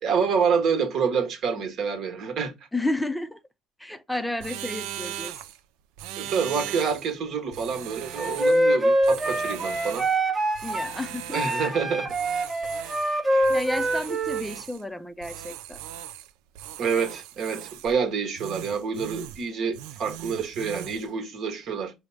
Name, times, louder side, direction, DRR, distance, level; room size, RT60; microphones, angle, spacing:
voice 1, 0.0-2.5 6.2-10.1 11.3-12.1 13.3-13.5 16.8-21.9, right 6 dB, 60° right, 1.1 m, -27 dB
voice 2, 2.7-3.4 3.8-5.3 10.6-11.4 13.5-15.8, left 1 dB, 5° left, 0.5 m, -31 dB
sound 1, 4.4-5.6 6.0-7.1 7.5-8.7 9.0-10.2 10.5-11.8 12.1-13.2 13.4-14.8 15.2-16.3 16.6-18.0 18.4-19.5 19.7-21.1, right 12 dB, 80° right, 0.3 m, -39 dB
Wind instrument woodwind instrument, 8.1-10.9 11.3-14.4, right 1 dB, 25° right, 0.8 m, -24 dB
4.9 x 2.0 x 4.5 m
hypercardioid pair, 70°, 0 cm